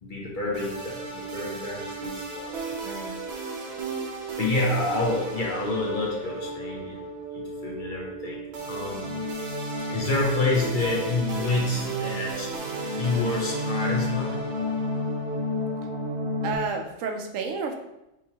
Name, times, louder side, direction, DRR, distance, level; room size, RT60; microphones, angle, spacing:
voice 1, 0.0-2.7 4.4-7.0 7.3-9.1 9.9-12.5 12.9-14.4, left 2 dB, 45° left, -2 dB, 0.9 m, -28 dB
sound 1, 0.5-16.5, equal, 65° right, 0.9 m, -32 dB
voice 2, 2.8-3.2 16.4-17.8, right 4 dB, 85° right, 4 dB, 1.0 m, -31 dB
5.3 x 3.1 x 2.8 m, 0.89 s
omnidirectional pair, 1.3 m